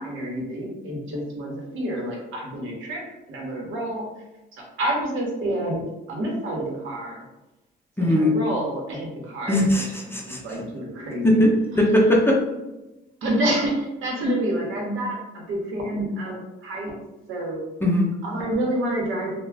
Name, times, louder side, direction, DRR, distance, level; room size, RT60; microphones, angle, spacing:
voice 1, 0.0-4.2 4.5-7.2 8.0-9.8 10.1-11.5 13.2-16.9 17.3-17.6 18.2-19.4, right 1 dB, 80° right, -1 dB, 0.8 m, -28 dB
voice 2, 8.0-8.4 9.5-10.4 11.2-12.4 17.8-18.1, left 1 dB, 10° left, -2 dB, 0.6 m, -19 dB
2.3 x 2.1 x 3.3 m, 1.0 s
cardioid pair, 90°, 20 cm